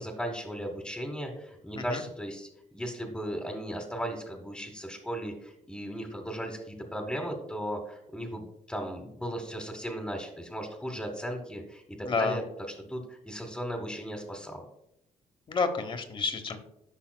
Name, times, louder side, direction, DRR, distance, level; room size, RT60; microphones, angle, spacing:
voice 1, 0.0-2.5 2.7-12.4 12.9-14.6, equal, 5° left, 2 dB, 1.0 m, -36 dB
voice 2, 12.0-12.4 15.5-16.6, left 4 dB, 35° left, 8 dB, 0.9 m, -29 dB
10.5 x 5.5 x 2.2 m, 0.78 s
cardioid pair, 100°, 14 cm